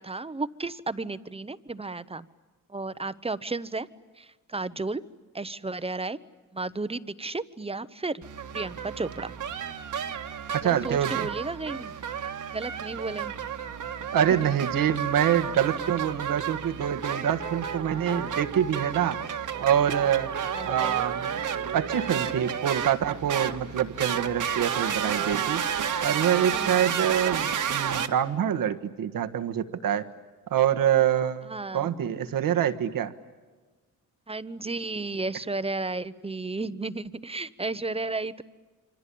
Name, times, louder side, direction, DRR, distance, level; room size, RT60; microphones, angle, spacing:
voice 1, 0.0-2.3 2.7-3.9 4.2-5.0 5.3-6.2 6.5-8.2 8.5-9.3 10.6-12.0 12.5-13.4 20.4-21.1 26.5-26.8 31.5-31.9 34.3-38.4, right 3 dB, 15° right, 14 dB, 0.9 m, -33 dB
sound 1, 8.2-28.1, right 8 dB, 65° right, 1.7 m, -31 dB
voice 2, 10.5-11.3 14.1-19.2 19.6-20.3 20.6-21.4 21.7-25.6 26.0-30.0 30.5-33.1, right 9 dB, 85° right, 8 dB, 1.5 m, -26 dB
27.0 x 25.5 x 8.6 m, 1.3 s
cardioid pair, 100°, 33 cm